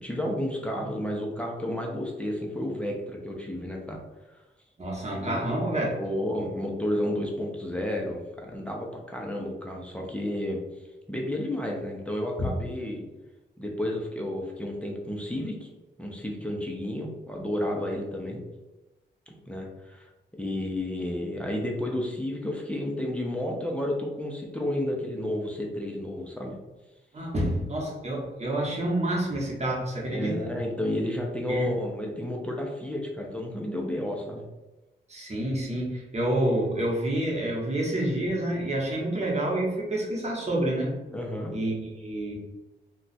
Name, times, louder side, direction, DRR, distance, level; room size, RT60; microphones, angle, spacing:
voice 1, 0.0-4.0 4.3-4.4 5.1-5.6 6.0-10.6 11.1-13.1 13.6-15.7 16.0-18.4 19.3-20.1 20.4-26.6 30.1-34.4 41.1-41.5, left 1 dB, 5° left, -1 dB, 0.6 m, -31 dB
voice 2, 4.8-6.0 12.4-12.5 27.1-30.5 31.5-31.7 35.1-41.0 41.5-42.3, right 1 dB, 35° right, -3 dB, 1.0 m, -28 dB
2.4 x 2.3 x 4.0 m, 1.1 s
wide cardioid pair, 95°, 20 cm